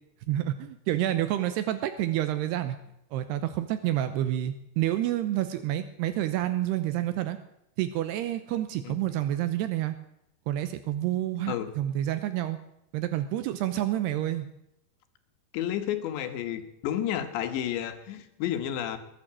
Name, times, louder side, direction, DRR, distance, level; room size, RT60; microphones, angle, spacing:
voice 1, 0.3-2.8 3.1-7.4 7.8-10.0 10.5-12.6 12.9-14.5, right 13 dB, 80° right, 10 dB, 2.8 m, -28 dB
voice 2, 15.5-19.0, left 10 dB, 90° left, 8 dB, 3.7 m, -31 dB
21.0 x 9.0 x 7.5 m, 0.81 s
omnidirectional pair, 4.9 m